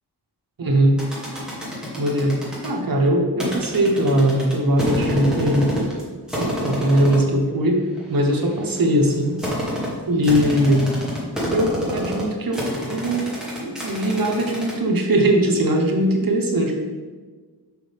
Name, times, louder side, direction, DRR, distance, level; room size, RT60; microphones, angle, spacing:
voice 1, 0.6-1.0 2.0-2.4 2.6-5.9 6.3-9.4 10.1-10.9 11.4-16.7, right 1 dB, 55° right, 0 dB, 1.2 m, -20 dB
sound 1, 1.0-2.7 3.4-6.0 6.3-7.3 8.0-14.7, equal, ahead, 1.8 m, -28 dB
6.2 x 5.6 x 3.5 m, 1.4 s
wide cardioid pair, 115°, 41 cm